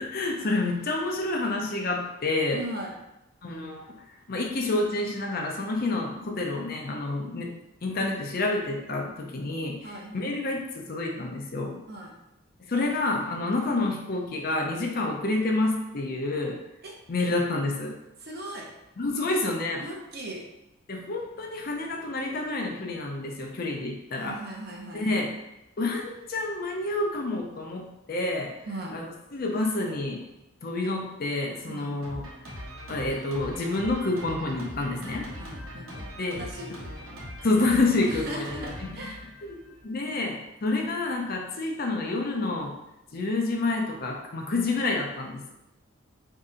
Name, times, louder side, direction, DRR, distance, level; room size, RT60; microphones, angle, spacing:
voice 1, 0.0-2.6 3.4-3.8 4.3-7.5 7.8-11.8 12.7-16.6 17.1-18.0 19.0-19.8 20.9-24.4 24.9-25.3 25.8-28.5 28.9-30.2 30.6-32.3 32.9-35.3 36.2-36.5 37.4-38.9 39.4-39.6 39.8-42.7 43.1-45.5, left 2 dB, 45° left, 1 dB, 0.5 m, -28 dB
voice 2, 2.5-2.9 9.8-10.3 11.9-12.1 16.8-16.9 18.2-18.7 19.8-20.4 24.2-25.3 28.7-29.0 31.7-31.9 35.4-37.3 38.0-39.2, right 1 dB, 45° right, -1 dB, 0.7 m, -38 dB
Drum kit, 32.0-39.8, equal, 75° right, 1.0 m, -41 dB
3.2 x 2.7 x 3.7 m, 0.90 s
head